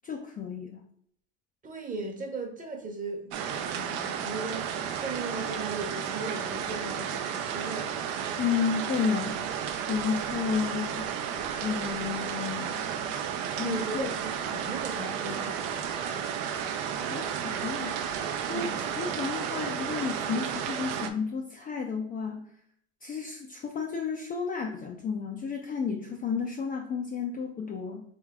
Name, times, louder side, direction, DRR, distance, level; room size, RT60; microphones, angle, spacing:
voice 1, 0.0-0.8 8.4-11.1 11.6-12.9 13.6-14.1 17.0-18.0 18.5-22.4 23.0-28.0, left 6 dB, 25° left, 0.4 m, -32 dB
voice 2, 1.6-3.3 3.7-7.9 13.6-16.1 18.5-18.8, right 3 dB, 20° right, 0.9 m, -37 dB
sound 1, 3.3-21.1, right 8 dB, 65° right, 0.6 m, -33 dB
3.5 x 3.1 x 3.5 m
supercardioid pair, 115°, 38 cm